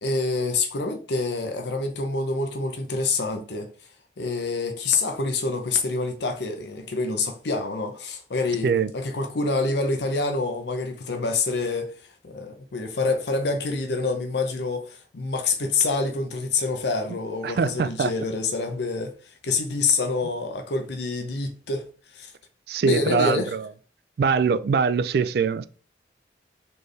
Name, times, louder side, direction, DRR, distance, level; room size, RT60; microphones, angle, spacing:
voice 1, 0.0-3.7 4.2-11.9 12.2-21.8 22.1-22.3 22.8-23.5, left 3 dB, 70° left, 0.6 m, -27 dB
voice 2, 17.4-18.1 22.7-23.7 24.2-25.7, right 5 dB, 60° right, 0.3 m, -23 dB
4.3 x 3.3 x 3.2 m
head